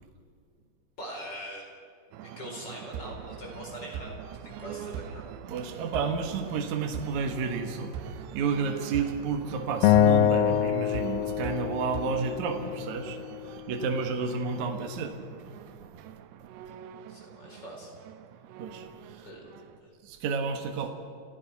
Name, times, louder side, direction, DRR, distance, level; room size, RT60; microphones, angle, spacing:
voice 1, 1.0-1.7 2.2-5.2 14.0-14.3 16.7-16.8 17.1-17.9 19.1-19.9, equal, 25° left, 0 dB, 4.6 m, -43 dB
sound 1, 2.1-19.8, right 9 dB, 85° right, 2.8 m, -43 dB
voice 2, 5.5-15.2 16.0-16.1 18.6-19.3 20.0-20.9, right 5 dB, 60° right, 4 dB, 2.4 m, -31 dB
Acoustic guitar, 9.8-13.1, left 11 dB, 85° left, 2.0 m, -24 dB
30.0 x 15.5 x 5.9 m, 2.3 s
omnidirectional pair, 4.7 m